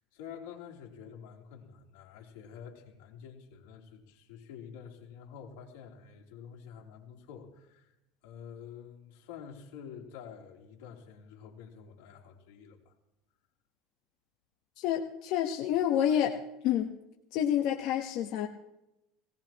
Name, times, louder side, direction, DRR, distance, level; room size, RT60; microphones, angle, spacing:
voice 1, 0.1-7.9 8.2-12.9, left 7 dB, 80° left, 0 dB, 3.3 m, -48 dB
voice 2, 14.8-16.3 16.6-16.9 17.3-18.5, left 10 dB, 55° left, 2 dB, 1.3 m, -28 dB
20.5 x 18.0 x 3.0 m, 0.89 s
supercardioid pair, 150°, 0 cm